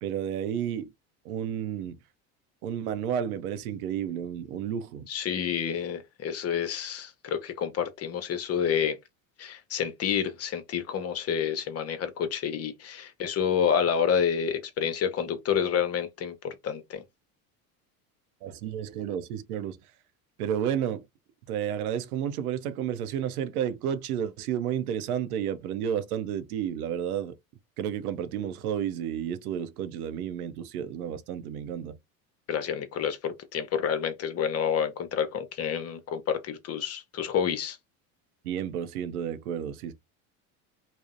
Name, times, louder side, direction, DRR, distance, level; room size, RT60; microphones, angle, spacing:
voice 1, 0.0-0.9 1.3-2.0 2.6-5.1 18.4-19.8 20.4-21.0 21.5-27.3 27.8-31.9 38.4-39.9, right 9 dB, 85° right, 0.5 m, -31 dB
voice 2, 5.1-9.0 9.4-17.0 32.5-37.8, left 8 dB, 35° left, 0.6 m, -29 dB
2.6 x 2.0 x 2.4 m
hypercardioid pair, 85°, 43 cm